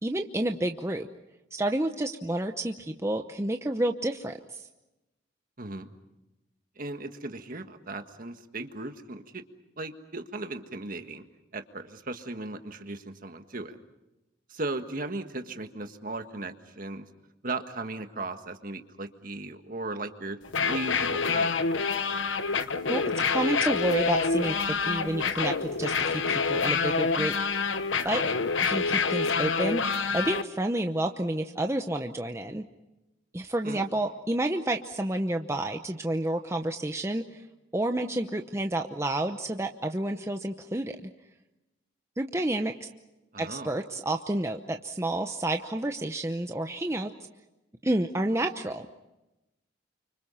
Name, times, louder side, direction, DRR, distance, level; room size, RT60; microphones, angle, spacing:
voice 1, 0.0-1.1 1.5-4.7 22.9-27.3 28.0-28.2 28.6-32.6 33.3-37.4 37.7-41.1 42.2-42.9 43.4-47.1 47.8-49.0, right 1 dB, 15° right, 5 dB, 0.8 m, -30 dB
voice 2, 5.6-5.9 6.8-9.4 9.8-11.2 11.5-13.8 14.5-17.1 17.4-20.4 20.6-21.5 33.6-33.8 43.3-43.7, right 2 dB, 45° right, 7 dB, 1.6 m, -37 dB
sound 1, 20.4-30.4, left 4 dB, 90° left, 1.1 m, -27 dB
30.0 x 25.5 x 5.7 m, 0.97 s
head